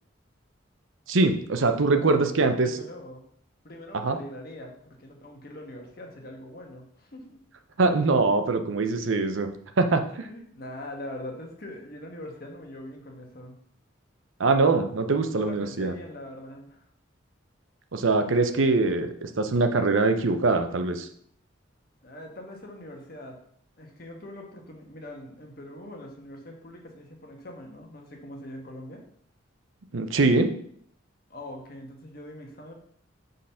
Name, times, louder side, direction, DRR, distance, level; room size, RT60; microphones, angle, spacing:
voice 1, 1.1-2.8 3.9-4.2 7.8-9.5 9.8-10.3 14.4-15.9 17.9-21.1 29.9-30.5, right 3 dB, 85° right, 7 dB, 0.7 m, -23 dB
voice 2, 2.6-3.2 3.6-7.4 10.2-13.5 15.3-16.8 22.0-23.4 23.8-29.0 31.3-32.7, left 1 dB, 50° left, 2 dB, 1.4 m, -42 dB
6.4 x 4.0 x 5.6 m, 0.65 s
head